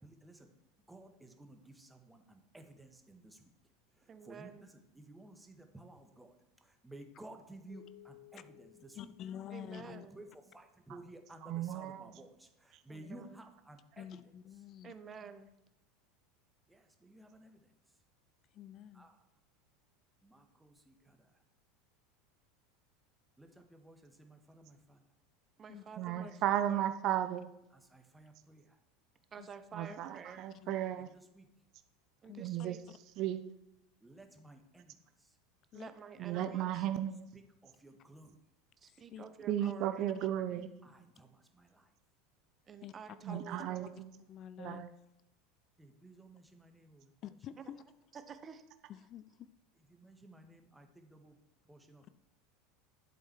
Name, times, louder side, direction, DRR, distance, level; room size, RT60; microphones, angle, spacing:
voice 1, 0.0-0.5 0.9-3.5 3.9-9.1 9.8-14.2 16.7-17.7 18.9-19.2 20.2-21.4 23.4-25.0 27.7-28.8 31.0-31.5 34.0-35.4 37.3-38.4 40.6-41.9 45.8-47.1 49.8-51.4 51.7-52.1, right 1 dB, 10° right, 5 dB, 1.6 m, -56 dB
voice 2, 4.1-4.7 9.5-10.2 12.9-13.3 14.8-15.5 25.6-26.9 29.3-30.4 32.2-32.8 35.7-36.8 38.8-40.1 41.0-41.1 42.7-43.9 48.1-48.6, right 6 dB, 30° right, 10 dB, 1.1 m, -50 dB
sound 1, 7.7-10.3, left 15 dB, 20° left, 2.0 m, -59 dB
voice 3, 9.0-10.1 14.0-15.0 18.5-19.1 25.7-25.8 26.2-26.3 29.4-29.5 30.6-30.9 32.2-32.5 35.7-35.9 38.9-39.2 39.6-39.7 42.8-42.9 43.3-43.6 44.1-44.9 47.2-47.8 48.9-49.5, left 10 dB, 45° left, 15 dB, 0.5 m, -48 dB
voice 4, 11.4-12.1 26.0-27.5 29.7-31.1 32.4-32.8 33.2-33.4 36.2-37.3 39.5-40.7 43.2-44.1 44.6-44.9, right 11 dB, 50° right, 10 dB, 0.7 m, -35 dB
11.0 x 7.8 x 4.6 m, 0.87 s
figure-of-eight pair, 80°, 0 cm